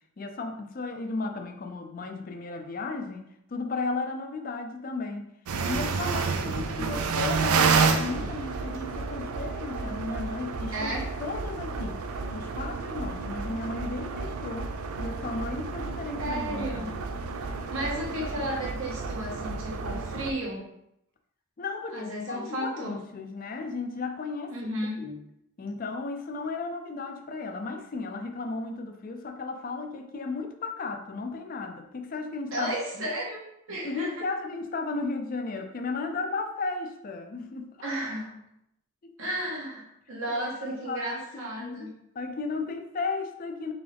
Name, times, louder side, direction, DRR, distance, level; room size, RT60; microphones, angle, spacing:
voice 1, 0.2-5.3 5.7-12.0 12.3-14.7 15.0-17.1 21.6-24.5 25.0-25.2 25.6-32.7 33.0-33.1 33.8-37.7 39.0-39.2 40.3-41.9 42.2-43.7, left 3 dB, 40° left, 5 dB, 0.4 m, -35 dB
sound 1, 5.5-20.3, right 4 dB, 90° right, 0.4 m, -30 dB
voice 2, 10.7-11.1 16.2-16.9 17.7-20.6 21.9-23.0 24.5-25.0 32.5-34.2 37.8-38.4 39.2-41.9, right 1 dB, 70° right, -4 dB, 1.4 m, -33 dB
3.8 x 3.8 x 3.4 m, 0.79 s
head